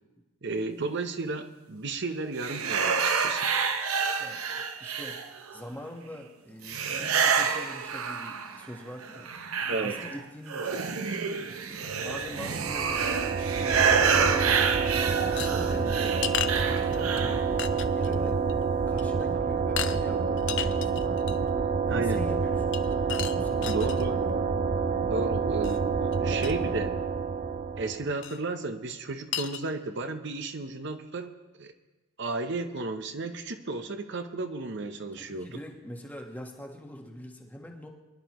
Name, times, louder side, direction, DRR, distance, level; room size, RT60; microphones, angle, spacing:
voice 1, 0.4-3.5 9.7-10.0 21.9-22.2 23.7-24.2 25.0-27.0 27.8-31.7 32.2-35.5, right 3 dB, 55° right, 8 dB, 0.8 m, -33 dB
sound 1, 2.4-5.6 6.6-8.7 9.0-17.5, right 6 dB, 90° right, 0.9 m, -28 dB
voice 2, 4.2-5.2 5.5-9.3 9.8-11.0 11.4-13.1 13.5-16.1 16.5-18.4 18.9-21.1 21.9-23.0 23.4-24.4 35.1-37.9, equal, 10° left, 1 dB, 1.3 m, -44 dB
sound 2, 12.3-28.1, right 5 dB, 40° right, 0.5 m, -28 dB
sound 3, 15.4-17.2 17.6-18.2 18.5-18.6 19.0-19.2 19.8-20.0 20.4-21.5 22.7-24.0 25.6-25.8 26.1-26.2 26.4-26.5 28.2-28.4 28.9-29.0 29.3-29.6, left 11 dB, 60° left, 0.6 m, -34 dB
23.0 x 11.0 x 3.1 m, 1.1 s
head